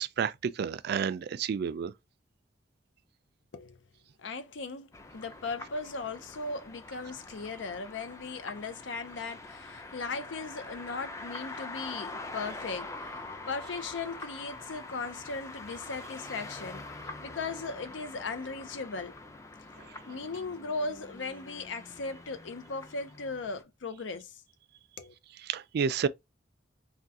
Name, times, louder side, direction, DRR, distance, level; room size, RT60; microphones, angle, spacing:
voice 1, 0.0-1.9 25.5-26.1, right 7 dB, 60° right, 0.3 m, -30 dB
voice 2, 4.2-17.0 17.2-19.1 20.1-24.4 25.0-25.1, left 4 dB, 85° left, 0.6 m, -38 dB
sound 1, 4.9-23.6, left 2 dB, 15° left, 0.4 m, -45 dB
3.5 x 2.3 x 2.6 m
head